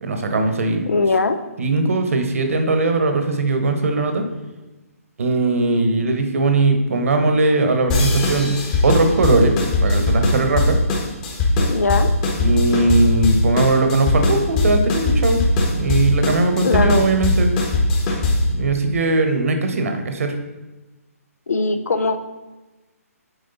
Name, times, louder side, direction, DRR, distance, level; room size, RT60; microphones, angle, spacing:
voice 1, 0.0-0.9 1.6-4.2 5.2-8.6 8.8-9.6 9.8-10.8 12.4-15.4 15.7-17.5 18.5-20.3, right 2 dB, 60° right, 5 dB, 1.1 m, -19 dB
voice 2, 0.9-1.4 11.6-12.1 16.6-17.1 21.5-22.2, left 3 dB, 75° left, 10 dB, 0.7 m, -20 dB
sound 1, 7.9-18.6, left 2 dB, 25° left, 1.3 m, -19 dB
8.1 x 4.9 x 4.0 m, 1.1 s
hypercardioid pair, 150°, 8 cm